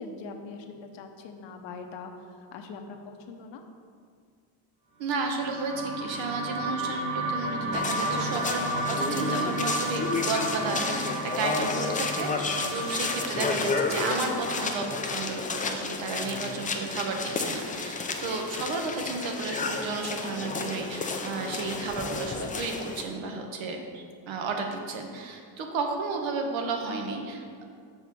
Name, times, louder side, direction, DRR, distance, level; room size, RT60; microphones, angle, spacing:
voice 1, 0.0-3.6, left 4 dB, 70° left, 4 dB, 0.9 m, -42 dB
voice 2, 5.0-27.6, right 4 dB, 75° right, 3 dB, 1.1 m, -33 dB
sound 1, 5.2-15.5, right 2 dB, 50° right, 1.7 m, -33 dB
sound 2, 7.7-23.0, left 4 dB, 20° left, 0.4 m, -31 dB
6.9 x 3.9 x 5.9 m, 2.2 s
cardioid pair, 130°, 47 cm